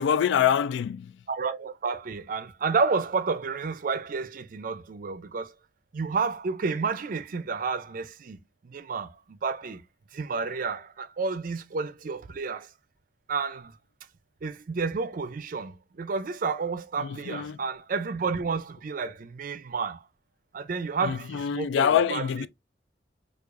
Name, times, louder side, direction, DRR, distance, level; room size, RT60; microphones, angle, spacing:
voice 1, 0.0-1.1 17.0-17.6 21.0-22.5, left 8 dB, 90° left, 0.3 m, -25 dB
voice 2, 1.3-5.5 5.9-8.4 8.6-9.8 10.1-12.7 13.3-13.7 14.4-20.0 20.5-22.5, right 4 dB, 50° right, 0.4 m, -30 dB
4.6 x 2.4 x 2.4 m
head